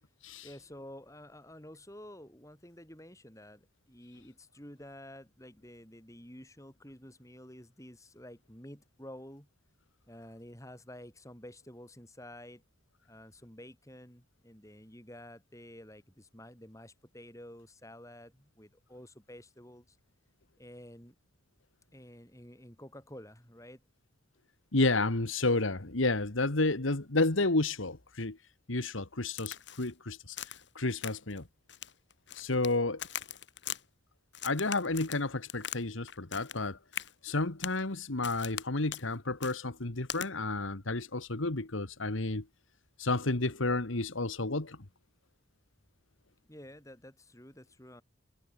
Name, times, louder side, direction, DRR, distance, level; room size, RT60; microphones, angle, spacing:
voice 1, 0.4-9.5 10.1-12.6 13.1-20.0 20.6-21.2 21.9-23.8 46.5-48.0, left 1 dB, 15° left, 7.2 m, -50 dB
voice 2, 24.7-28.4 28.7-31.5 32.4-33.0 34.4-36.8 37.2-42.4 43.0-44.8, left 2 dB, 80° left, 1.9 m, -31 dB
Crack, 29.4-29.9 30.4-30.7 31.0-31.4 31.7-32.7 33.0-33.8 34.3-35.8 36.1-36.6 36.9-37.1 37.6-37.8 38.2-38.6 38.9-39.1 39.4-39.6 40.1-40.3, left 9 dB, 60° left, 5.1 m, -40 dB
head